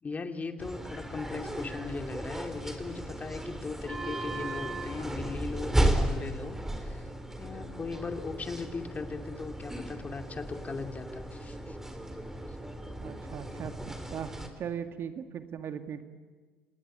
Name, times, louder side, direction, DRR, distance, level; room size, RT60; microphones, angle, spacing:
voice 1, 0.0-7.1 7.4-11.8 12.5-12.6, left 4 dB, 30° left, 6 dB, 2.6 m, -39 dB
sound 1, 0.6-14.5, right 1 dB, 10° right, 3.7 m, -34 dB
voice 2, 13.0-13.7 14.1-16.0, right 8 dB, 50° right, 8 dB, 1.8 m, -38 dB
28.0 x 20.0 x 8.7 m, 1.4 s
hypercardioid pair, 65°, 5 cm